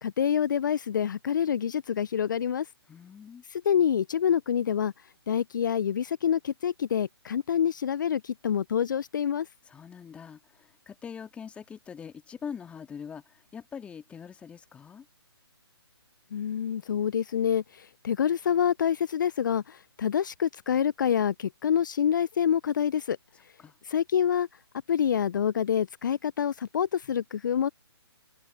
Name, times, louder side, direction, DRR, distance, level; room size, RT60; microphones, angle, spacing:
voice 1, 0.0-2.7 3.5-4.9 5.3-9.5 16.3-23.2 23.8-24.5 24.9-27.7, left 8 dB, 50° left, 0.6 m, -27 dB
voice 2, 2.9-3.4 9.7-15.1 23.6-23.7, left 7 dB, 10° left, 2.3 m, -43 dB
figure-of-eight pair, 140°, 14 cm